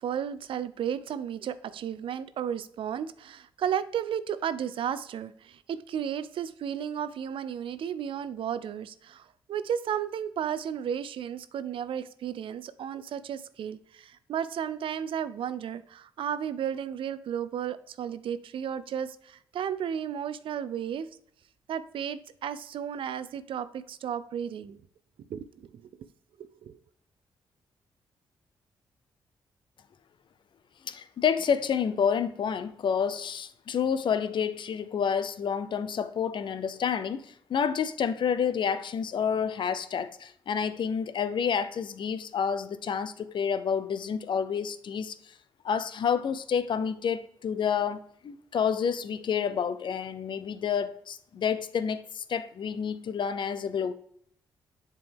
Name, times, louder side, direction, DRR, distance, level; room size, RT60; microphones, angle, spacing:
voice 1, 0.0-21.1 21.7-24.8 25.3-25.8 26.4-26.8, right 9 dB, 70° right, 0.5 m, -33 dB
voice 2, 30.8-45.1 45.6-53.9, left 7 dB, 60° left, 0.6 m, -29 dB
7.5 x 4.5 x 3.5 m
supercardioid pair, 60°, 9 cm